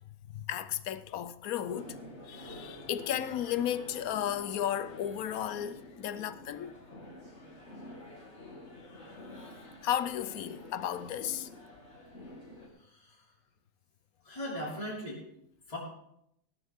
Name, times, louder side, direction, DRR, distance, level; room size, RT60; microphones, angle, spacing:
voice 1, 0.3-2.0 2.3-6.8 9.8-11.5, left 10 dB, 85° left, 1.2 m, -34 dB
sound 1, 1.6-12.7, left 1 dB, 50° left, 3.1 m, -48 dB
voice 2, 12.8-13.2 14.2-15.2 15.7-15.8, left 1 dB, 25° left, 3.1 m, -39 dB
17.0 x 12.5 x 3.6 m
omnidirectional pair, 1.5 m